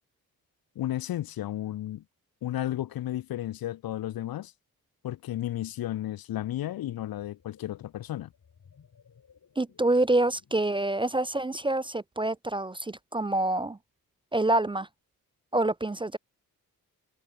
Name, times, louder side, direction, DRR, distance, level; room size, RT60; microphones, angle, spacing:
voice 1, 0.8-2.0 2.4-4.5 5.0-8.3, left 13 dB, 75° left, 0.9 m, -33 dB
sound 1, 6.2-10.9, left 7 dB, 55° left, 4.4 m, -60 dB
voice 2, 9.6-13.8 14.3-14.9 15.5-16.2, right 2 dB, 15° right, 0.4 m, -26 dB
cardioid pair, 60°, 36 cm